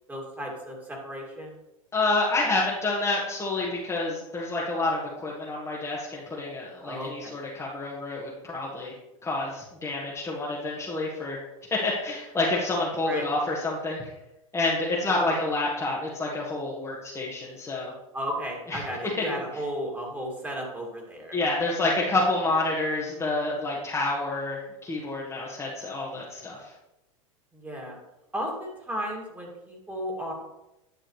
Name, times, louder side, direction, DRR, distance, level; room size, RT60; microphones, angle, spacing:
voice 1, 0.1-1.6 6.8-7.3 13.0-13.3 15.1-15.4 18.1-21.4 22.1-22.2 27.5-28.0 28.3-30.3, equal, 10° right, -1 dB, 2.5 m, -34 dB
voice 2, 1.9-8.9 9.2-11.4 11.7-14.1 14.5-17.9 18.7-18.8 19.2-19.3 21.3-26.7, left 2 dB, 15° left, -5 dB, 1.6 m, -28 dB
10.5 x 6.2 x 3.3 m, 0.93 s
hypercardioid pair, 105°, 17 cm